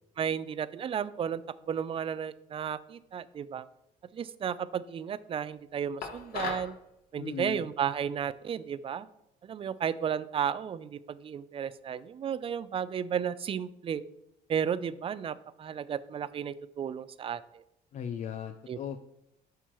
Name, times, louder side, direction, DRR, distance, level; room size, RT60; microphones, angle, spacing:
voice 1, 0.2-1.4 1.7-3.7 4.1-6.8 7.1-9.1 9.4-14.0 14.5-17.6 18.7-18.8, right 8 dB, 35° right, 16 dB, 0.3 m, -33 dB
sound 1, 6.0-6.7, left 6 dB, 60° left, 1.1 m, -36 dB
voice 2, 7.2-7.6 17.9-19.0, left 7 dB, 45° left, 8 dB, 0.4 m, -37 dB
8.1 x 5.9 x 3.0 m, 0.82 s
cardioid pair, 110°, 17 cm